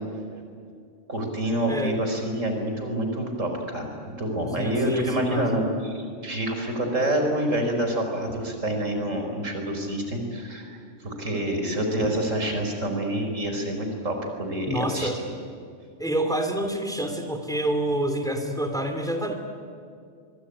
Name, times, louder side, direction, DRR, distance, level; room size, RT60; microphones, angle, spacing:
voice 1, 1.1-10.8 11.0-15.3, right 1 dB, 80° right, 4 dB, 5.0 m, -27 dB
voice 2, 1.7-2.0 4.6-5.5 12.0-12.1 14.7-15.2 16.0-19.3, right 1 dB, 5° left, 6 dB, 2.7 m, -27 dB
24.0 x 23.0 x 9.9 m, 2.3 s
omnidirectional pair, 1.3 m